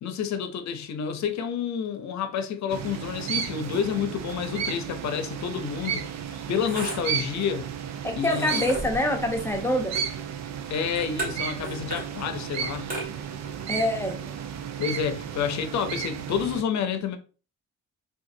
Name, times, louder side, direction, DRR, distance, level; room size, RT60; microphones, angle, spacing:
voice 1, 0.0-6.1 6.5-7.7 8.2-8.7 10.7-12.9 14.8-17.2, left 7 dB, 65° left, 0.7 m, -29 dB
sound 1, 2.7-16.6, right 8 dB, 60° right, 0.5 m, -33 dB
sound 2, 5.5-15.3, right 2 dB, 30° right, 1.7 m, -39 dB
voice 2, 8.0-9.9 13.7-14.2, left 1 dB, 10° left, 0.8 m, -25 dB
3.8 x 2.5 x 2.6 m
cardioid pair, 90°, 30 cm